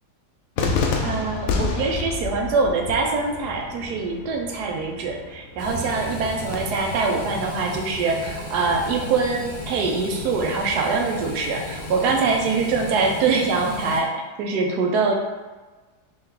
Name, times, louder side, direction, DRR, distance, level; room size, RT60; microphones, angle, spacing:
Cheering / Fireworks, 0.6-6.6, left 4 dB, 70° left, 0.9 m, -29 dB
voice 1, 1.0-14.1 14.4-15.1, right 4 dB, 80° right, 1 dB, 1.2 m, -24 dB
sound 1, 5.6-14.0, left 1 dB, 90° left, 1.6 m, -35 dB
3.7 x 3.0 x 3.6 m, 1.3 s
omnidirectional pair, 1.7 m